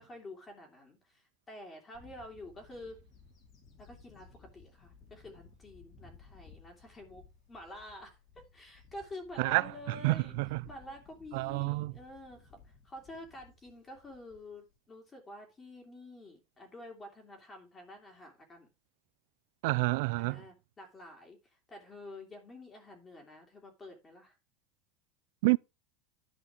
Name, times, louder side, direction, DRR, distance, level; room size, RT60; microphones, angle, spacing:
voice 1, 0.0-3.0 3.8-10.4 10.7-18.7 20.2-24.3, left 1 dB, 20° left, 2.7 m, -49 dB
Bird / Wind, 1.9-14.7, left 5 dB, 45° left, 2.8 m, -59 dB
voice 2, 9.4-10.6 11.3-11.9 19.6-20.4 25.4-25.6, right 23 dB, 70° right, 0.4 m, -29 dB
11.0 x 5.0 x 4.9 m
supercardioid pair, 125°, 0 cm